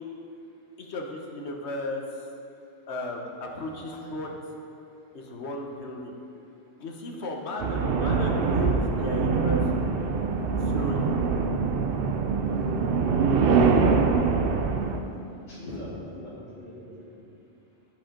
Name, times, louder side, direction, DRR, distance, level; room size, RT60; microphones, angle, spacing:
voice 1, 0.8-2.0 2.9-4.3 5.1-6.1 6.8-9.6 10.7-11.0, left 2 dB, 70° left, 1 dB, 1.3 m, -34 dB
sound 1, 7.6-15.0, right 5 dB, 60° right, 0.8 m, -24 dB
voice 2, 15.5-17.2, left 1 dB, 55° left, -11 dB, 2.2 m, -41 dB
11.5 x 5.6 x 5.2 m, 2.6 s
omnidirectional pair, 1.2 m